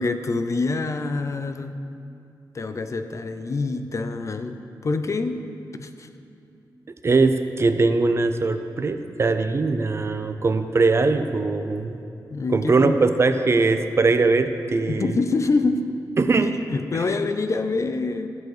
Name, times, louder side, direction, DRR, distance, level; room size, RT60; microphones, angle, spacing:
voice 1, 0.0-1.8 2.5-5.4 5.8-6.1 12.3-13.0 14.9-16.0 16.7-18.3, left 3 dB, 40° left, 9 dB, 0.5 m, -26 dB
voice 2, 7.0-12.0 12.5-15.2 16.2-16.6 16.9-17.0, right 3 dB, 35° right, 9 dB, 0.4 m, -21 dB
12.5 x 4.5 x 7.9 m, 2.6 s
wide cardioid pair, 160°, 8 cm